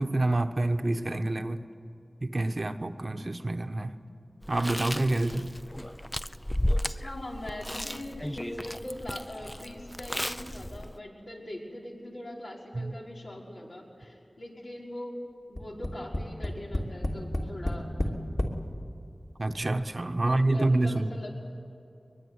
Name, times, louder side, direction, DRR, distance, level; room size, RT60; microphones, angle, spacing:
voice 1, 0.0-1.6 2.2-4.0 4.5-5.5 12.7-12.9 19.4-21.1, right 2 dB, 50° right, 7 dB, 1.1 m, -27 dB
Chewing mastication, 4.4-11.0, left 1 dB, 10° left, 0.5 m, -34 dB
voice 2, 7.0-15.1 15.5-18.1 20.2-21.3, left 1 dB, 80° left, -3 dB, 5.3 m, -41 dB
Tap, 15.6-18.6 19.4-19.5 19.8-19.9, left 1 dB, 40° left, 3.0 m, -30 dB
22.5 x 22.0 x 9.7 m, 2.6 s
wide cardioid pair, 50°, 0 cm